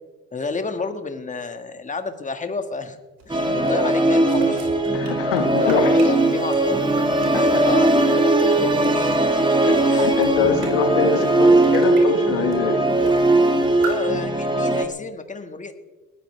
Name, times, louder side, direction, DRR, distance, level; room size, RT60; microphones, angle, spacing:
voice 1, 0.3-3.0 3.2-4.7 5.6-7.0 7.3-9.1 9.8-10.1 13.8-15.7, left 4 dB, 20° left, 8 dB, 1.6 m, -30 dB
sound 1, 3.2-7.9 8.3-10.9 11.3-12.0 12.5-12.6 12.9-13.3 13.6-14.0, right 4 dB, 60° right, 5.5 m, -37 dB
Musical instrument, 3.3-14.9, right 2 dB, 10° right, 1.8 m, -19 dB
voice 2, 4.9-6.0 7.3-7.6 9.6-12.8, left 5 dB, 85° left, 5 dB, 1.9 m, -23 dB
20.0 x 14.5 x 3.3 m, 1.2 s
hypercardioid pair, 65°, 38 cm